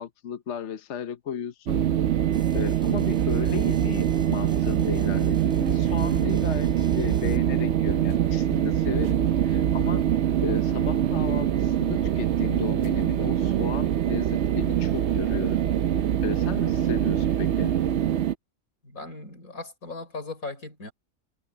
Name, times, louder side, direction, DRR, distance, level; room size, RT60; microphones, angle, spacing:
voice 1, 0.0-1.8 2.5-10.1 10.4-15.6 16.2-17.7, left 8 dB, 60° left, 1.1 m, -34 dB
sound 1, 1.7-18.3, right 10 dB, 60° right, 0.8 m, -24 dB
sound 2, 2.3-7.4, equal, 5° right, 3.5 m, -48 dB
voice 2, 18.8-20.9, left 3 dB, 80° left, 5.6 m, -38 dB
omnidirectional pair, 1.5 m